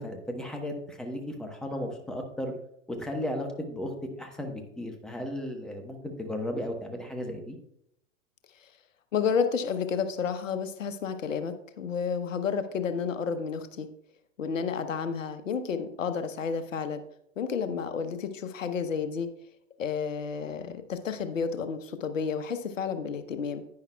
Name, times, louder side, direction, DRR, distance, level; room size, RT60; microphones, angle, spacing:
voice 1, 0.0-2.5 2.9-3.9 4.2-7.6, left 1 dB, ahead, 3 dB, 1.1 m, -35 dB
voice 2, 9.1-13.9 14.4-17.0 17.4-19.3 19.8-23.7, left 6 dB, 75° left, 10 dB, 0.9 m, -31 dB
10.5 x 9.5 x 2.3 m, 0.75 s
hypercardioid pair, 105°, 39 cm